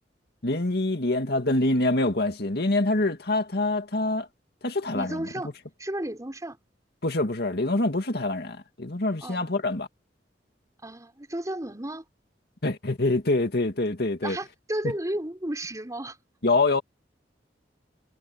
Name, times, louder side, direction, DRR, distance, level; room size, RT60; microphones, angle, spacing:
voice 1, 0.4-4.3 4.6-5.2 7.0-9.9 12.6-14.4 16.4-16.8, left 2 dB, 65° left, 2.2 m, -25 dB
voice 2, 4.9-5.5 5.8-6.6 9.2-9.4 10.8-12.0 14.2-16.2, right 1 dB, 20° right, 4.7 m, -33 dB
head